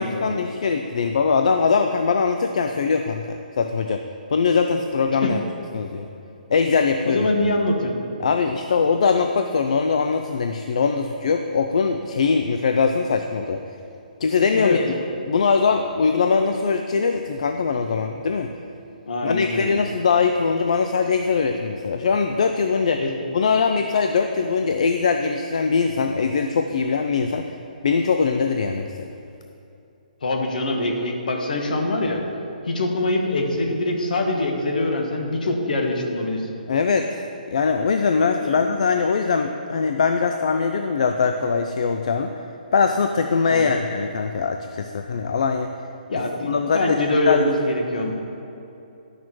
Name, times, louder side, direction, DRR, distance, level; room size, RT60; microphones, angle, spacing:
voice 1, 0.0-4.0 4.3-5.4 5.7-6.1 6.5-7.2 8.2-13.6 14.2-14.9 15.3-18.5 19.2-23.0 23.3-27.6 27.8-29.1 36.7-37.1 37.5-42.3 42.7-45.7 46.4-47.0 47.3-47.4, left 5 dB, 45° left, 6 dB, 0.4 m, -21 dB
voice 2, 7.0-8.0 14.5-14.8 19.1-19.8 23.0-23.1 30.2-32.2 32.6-36.5 38.4-38.6 43.5-43.8 46.1-48.1, left 2 dB, 65° left, 2 dB, 1.4 m, -24 dB
10.5 x 6.4 x 4.5 m, 2.8 s
hypercardioid pair, 175°, 5 cm